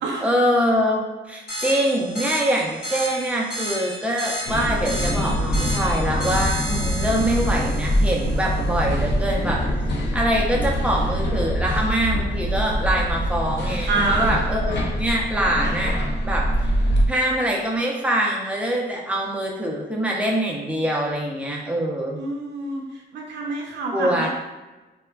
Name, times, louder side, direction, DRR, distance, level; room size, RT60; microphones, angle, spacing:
voice 1, 0.2-9.6 10.1-16.0 16.2-16.7 17.1-22.2 23.9-24.3, right 1 dB, 5° right, -2 dB, 0.4 m, -24 dB
sound 1, 1.5-8.6, equal, 55° left, 0.9 m, -32 dB
sound 2, 4.5-17.1, equal, 70° left, 0.5 m, -24 dB
voice 2, 13.9-14.3 22.2-22.8 23.1-24.3, right 3 dB, 75° right, -2 dB, 0.4 m, -26 dB
3.3 x 2.1 x 2.2 m, 1.1 s
cardioid pair, 130°, 19 cm